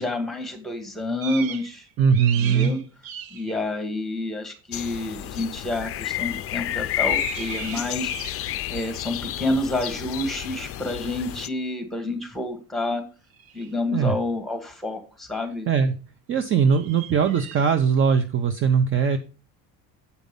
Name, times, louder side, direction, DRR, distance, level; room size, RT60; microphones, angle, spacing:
voice 1, 0.0-1.9 2.4-2.8 3.3-8.1 8.7-13.0 13.5-15.7, left 2 dB, ahead, 5 dB, 1.7 m, -29 dB
sound 1, 1.2-1.7 2.0-3.6 6.1-6.4 6.9-8.6 11.3-11.4 13.3-13.7 16.6-17.7, right 9 dB, 65° right, 1.3 m, -38 dB
voice 2, 2.0-2.7 13.9-14.1 15.7-15.9 16.3-19.2, right 6 dB, 35° right, 9 dB, 0.6 m, -20 dB
sound 2, 4.7-11.5, left 14 dB, 40° left, 0.4 m, -31 dB
8.2 x 5.2 x 5.2 m, 0.35 s
cardioid pair, 160°, 38 cm